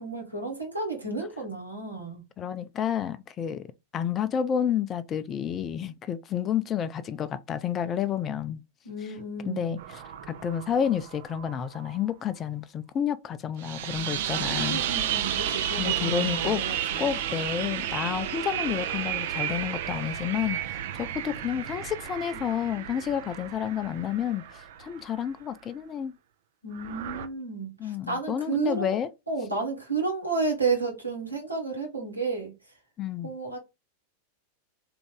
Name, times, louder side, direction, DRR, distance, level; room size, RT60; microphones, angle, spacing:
voice 1, 0.0-2.2 8.8-9.8 14.7-17.0 26.6-28.9 29.3-32.5 33.2-33.6, right 4 dB, 85° right, 1.4 m, -31 dB
voice 2, 2.4-8.6 9.4-10.0 10.3-14.8 15.8-26.1 27.8-29.1 33.0-33.3, left 9 dB, 25° left, 0.4 m, -30 dB
sound 1, 9.8-12.0 13.6-25.2 26.7-27.3, right 10 dB, 55° right, 0.5 m, -32 dB
3.4 x 2.5 x 3.7 m
figure-of-eight pair, 90°, 0 cm